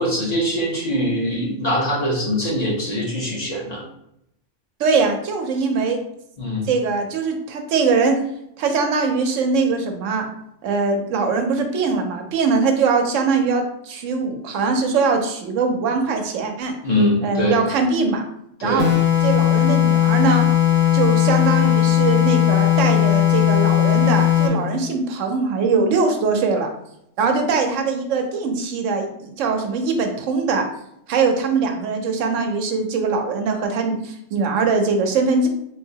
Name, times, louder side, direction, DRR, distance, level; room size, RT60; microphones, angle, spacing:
voice 1, 0.0-3.8 6.4-6.7 16.8-17.6 18.6-18.9, equal, 40° left, -4 dB, 0.8 m, -22 dB
voice 2, 4.8-6.0 6.6-8.2 8.6-10.3 10.6-16.7 17.2-18.2 18.6-18.9 19.2-20.5 20.9-26.7 27.2-30.7 31.1-35.5, right 4 dB, 85° right, 5 dB, 0.9 m, -21 dB
sound 1, 18.8-24.6, left 11 dB, 65° left, 0.9 m, -17 dB
3.2 x 2.8 x 2.7 m, 0.76 s
omnidirectional pair, 1.3 m